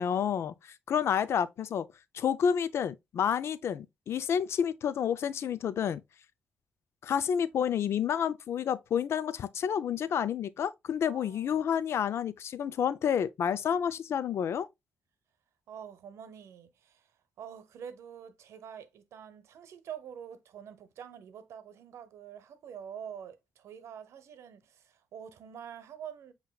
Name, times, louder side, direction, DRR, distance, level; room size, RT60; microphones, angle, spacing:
voice 1, 0.0-1.9 2.1-6.0 7.0-14.7, left 8 dB, 65° left, 0.4 m, -29 dB
voice 2, 11.0-11.6 15.7-17.1 17.4-26.3, right 8 dB, 80° right, 0.8 m, -46 dB
7.5 x 2.8 x 2.2 m
cardioid pair, 75°, 5 cm